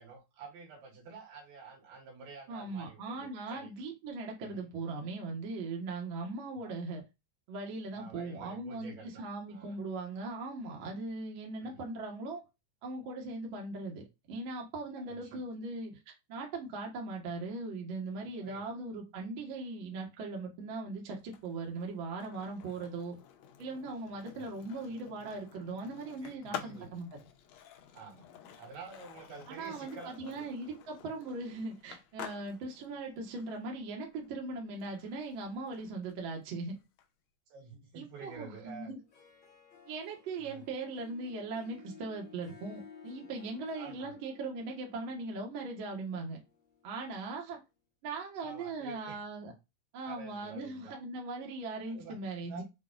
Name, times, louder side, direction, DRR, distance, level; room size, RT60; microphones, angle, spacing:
voice 1, 0.0-3.7 4.4-4.7 6.6-6.7 7.9-9.8 11.6-11.8 15.0-15.4 18.4-18.7 24.3-24.5 26.2-26.9 27.9-28.3 28.6-30.5 37.5-38.9 40.4-40.6 43.8-44.1 48.4-49.2 50.0-51.0 51.9-52.6, right 4 dB, 85° right, 3.4 m, -50 dB
voice 2, 2.5-7.0 7.5-12.4 12.8-23.1 23.6-27.1 29.5-36.8 37.9-39.0 39.8-46.4 46.8-47.6 48.0-49.5 49.9-52.6, right 3 dB, 55° right, 1.4 m, -39 dB
Skateboard, 21.2-37.1, left 9 dB, 80° left, 1.5 m, -51 dB
Harp, 39.0-47.6, left 7 dB, 60° left, 1.3 m, -56 dB
6.5 x 2.4 x 2.3 m
omnidirectional pair, 3.8 m